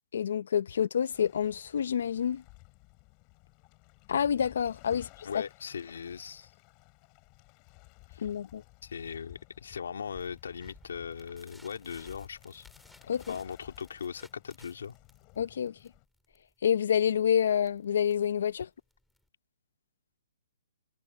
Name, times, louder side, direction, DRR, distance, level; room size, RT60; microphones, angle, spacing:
voice 1, 0.1-2.4 4.1-5.1 8.2-8.6 13.1-13.3 15.4-15.7 16.6-18.7, left 8 dB, 55° left, 0.7 m, -28 dB
Waves surf, 1.1-16.1, left 32 dB, 20° left, 7.8 m, -56 dB
voice 2, 4.9-6.5 8.1-8.3 8.8-12.7 13.3-14.9, left 7 dB, 70° left, 3.2 m, -39 dB
sound 1, 10.1-19.3, left 1 dB, ahead, 4.1 m, -60 dB
hypercardioid pair, 175°, 0 cm